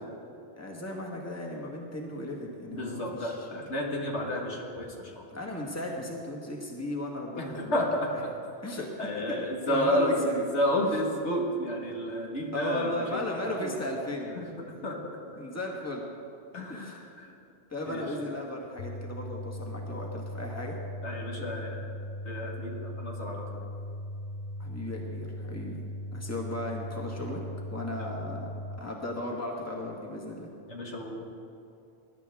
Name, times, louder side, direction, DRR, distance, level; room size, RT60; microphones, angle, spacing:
voice 1, 0.6-3.6 5.3-7.9 8.1-8.2 8.6-10.5 10.8-11.0 12.5-14.4 15.4-16.0 16.7-17.0 17.7-20.8 24.6-25.8 26.1-27.4 27.7-28.5 28.8-30.5, left 1 dB, 15° left, -1 dB, 1.7 m, -36 dB
voice 2, 2.7-5.3 7.4-8.3 9.0-13.2 13.6-13.7 14.4-15.0 16.5-16.9 17.2-17.3 17.9-18.1 21.0-21.9 22.2-23.6 30.7-31.2, equal, 75° left, -1 dB, 2.0 m, -31 dB
sound 1, 18.8-28.8, left 1 dB, 55° left, 0.6 m, -38 dB
21.0 x 11.0 x 3.6 m, 2.7 s
omnidirectional pair, 1.2 m